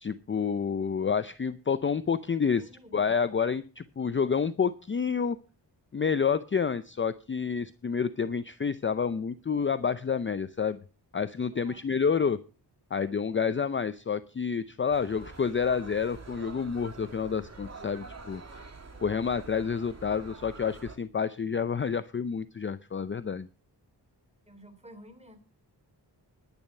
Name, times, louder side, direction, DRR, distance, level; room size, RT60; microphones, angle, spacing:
voice 1, 0.0-2.6 2.9-5.4 5.9-10.8 11.1-12.4 12.9-18.7 19.0-23.5, left 6 dB, 30° left, 13 dB, 0.6 m, -29 dB
voice 2, 2.5-3.0 11.5-11.8 24.5-25.4, equal, 15° right, 8 dB, 3.2 m, -51 dB
sound 1, 14.9-21.0, right 3 dB, 40° right, 2.7 m, -46 dB
11.0 x 10.5 x 5.5 m, 0.35 s
wide cardioid pair, 85°, 42 cm